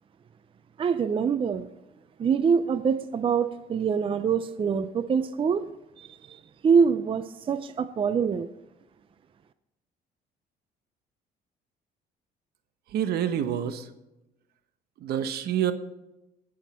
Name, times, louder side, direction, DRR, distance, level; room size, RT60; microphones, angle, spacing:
voice 1, 0.8-1.7 2.2-5.7 6.0-8.5, right 6 dB, 30° right, 13 dB, 0.5 m, -25 dB
voice 2, 12.9-13.8 15.0-15.7, right 10 dB, 70° right, 10 dB, 1.1 m, -27 dB
18.5 x 6.5 x 4.3 m, 0.94 s
cardioid pair, 110°, 17 cm